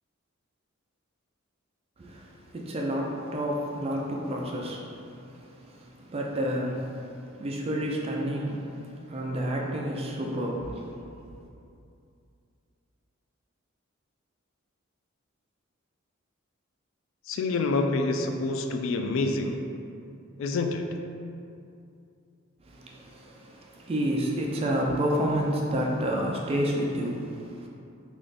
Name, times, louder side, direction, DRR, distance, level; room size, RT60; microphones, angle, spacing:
voice 1, 2.0-11.0 22.6-27.7, equal, 30° right, -1 dB, 0.4 m, -30 dB
voice 2, 17.3-19.6 20.4-20.9, left 3 dB, 65° left, 5 dB, 0.3 m, -27 dB
3.3 x 2.5 x 3.8 m, 2.6 s
head